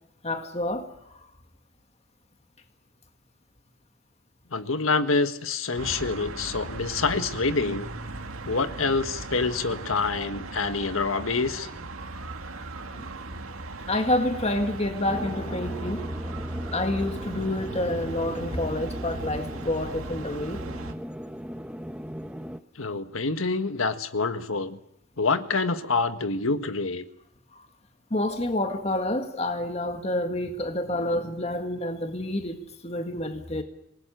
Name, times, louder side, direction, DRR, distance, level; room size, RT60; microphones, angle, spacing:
voice 1, 0.2-0.9 12.8-13.1 13.9-16.1 16.7-20.6 27.5-27.6 28.1-33.6, left 1 dB, 30° left, 1.9 m, -28 dB
voice 2, 4.5-7.9 8.4-11.7 22.8-24.8 25.2-27.0, left 4 dB, 80° left, 1.7 m, -26 dB
sound 1, 5.8-20.9, right 2 dB, 90° right, 2.1 m, -37 dB
sound 2, 15.1-22.6, equal, 5° right, 0.9 m, -38 dB
27.0 x 19.5 x 9.2 m
head